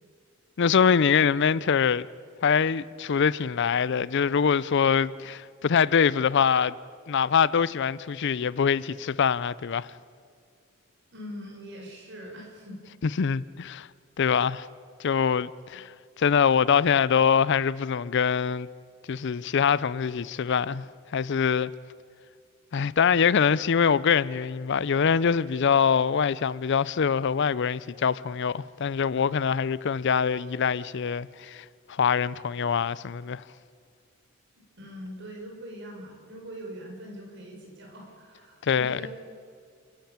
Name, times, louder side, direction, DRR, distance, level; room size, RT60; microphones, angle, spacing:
voice 1, 0.6-2.0 2.4-6.8 7.1-9.9 13.0-13.9 14.2-14.7 15.0-15.9 16.2-18.7 19.1-20.8 21.1-21.7 22.7-33.4 38.6-39.1, left 6 dB, 60° left, 0.5 m, -24 dB
voice 2, 11.1-12.8 34.8-39.1, equal, 60° right, 5.5 m, -42 dB
28.5 x 11.5 x 8.8 m
head